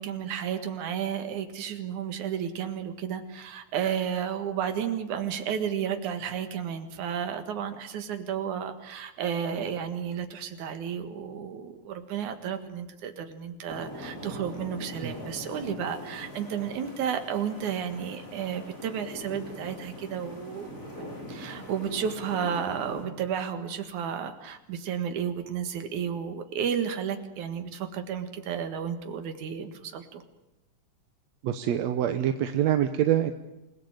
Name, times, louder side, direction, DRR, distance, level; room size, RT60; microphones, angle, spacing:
voice 1, 0.0-20.7 21.3-30.2, right 8 dB, 85° right, 7 dB, 3.2 m, -32 dB
sound 1, 13.7-23.0, equal, 25° left, 6.3 m, -41 dB
voice 2, 31.4-33.3, right 11 dB, 70° right, 8 dB, 2.1 m, -25 dB
28.5 x 18.5 x 9.0 m, 0.96 s
omnidirectional pair, 3.3 m